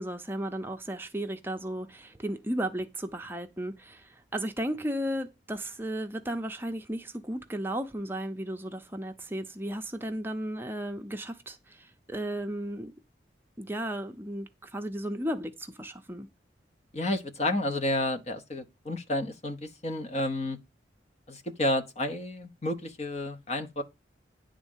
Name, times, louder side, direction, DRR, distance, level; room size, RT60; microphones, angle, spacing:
voice 1, 0.0-12.9 13.6-16.3, right 1 dB, 10° right, 0.7 m, -34 dB
voice 2, 16.9-20.6 21.3-23.8, left 1 dB, 35° left, 1.0 m, -31 dB
10.0 x 3.8 x 7.2 m
head